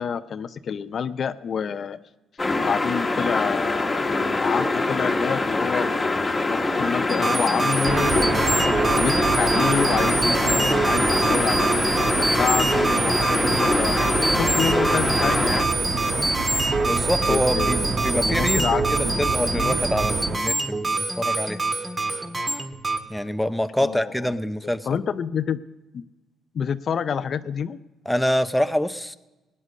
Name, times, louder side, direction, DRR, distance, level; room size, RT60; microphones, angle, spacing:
voice 1, 0.0-2.0 2.6-8.6 9.0-11.9 12.2-16.3 17.3-19.8 23.8-24.4 24.9-25.6 25.9-26.0 26.5-27.8, left 7 dB, 55° left, 13 dB, 0.5 m, -28 dB
sound 1, 2.4-15.7, left 2 dB, 20° left, 1.3 m, -24 dB
sound 2, 7.1-23.0, right 3 dB, 25° right, 1.7 m, -25 dB
sound 3, 7.8-20.4, right 4 dB, 55° right, 1.3 m, -28 dB
voice 2, 16.8-21.6 23.1-24.9 28.1-29.2, equal, 5° left, 10 dB, 0.6 m, -25 dB
18.0 x 9.7 x 6.4 m, 1.1 s
cardioid pair, 90°, 0 cm